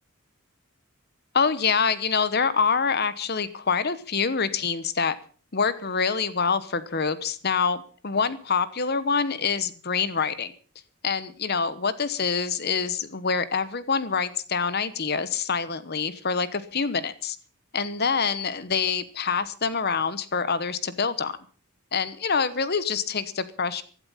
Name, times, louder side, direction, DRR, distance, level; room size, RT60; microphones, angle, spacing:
voice 1, 1.3-5.2 5.5-10.5 11.0-17.4 17.7-21.4 21.9-23.8, left 5 dB, 45° left, 15 dB, 1.1 m, -26 dB
15.5 x 12.0 x 5.7 m, 0.40 s
head